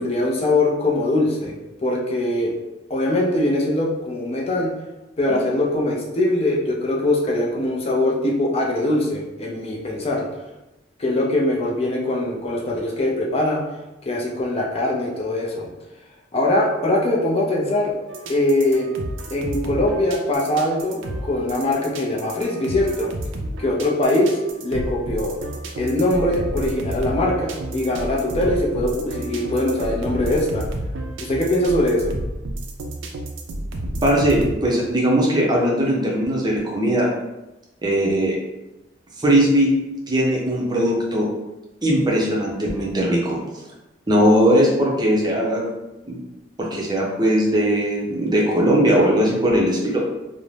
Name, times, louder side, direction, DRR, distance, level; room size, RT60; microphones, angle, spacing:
voice 1, 0.0-1.6 1.8-2.5 2.9-4.7 5.2-10.3 11.0-13.6 14.1-15.7 16.3-17.9 18.3-18.9 19.3-23.1 23.6-24.4 24.6-25.3 25.8-30.7 31.2-32.1, left 1 dB, 35° left, -2 dB, 0.5 m, -22 dB
sound 1, 18.1-34.5, right 1 dB, 85° right, 0.4 m, -31 dB
voice 2, 34.0-37.1 37.8-38.4 39.2-39.7 40.1-41.3 41.8-43.4 44.1-45.6 46.1-46.2 46.6-50.0, equal, 25° right, -3 dB, 0.6 m, -19 dB
2.5 x 2.1 x 3.1 m, 0.99 s
head